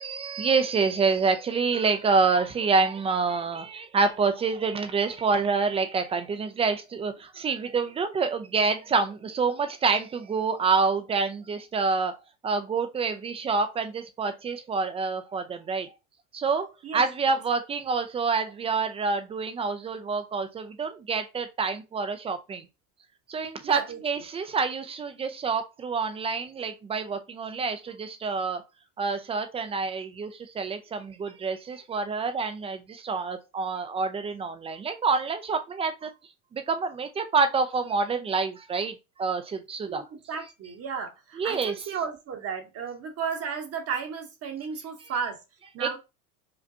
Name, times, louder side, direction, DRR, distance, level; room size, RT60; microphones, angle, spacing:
voice 1, 0.0-12.1 12.4-15.9 16.3-16.7 16.9-22.7 23.3-28.6 29.0-36.1 36.5-40.0 41.4-41.7 45.8-46.0, right 4 dB, 15° right, 0.3 m, -27 dB
voice 2, 16.8-17.4 23.6-24.0 39.9-45.4 45.7-46.0, right 6 dB, 35° right, 0.9 m, -34 dB
5.1 x 2.2 x 2.7 m
hypercardioid pair, 100°, 44 cm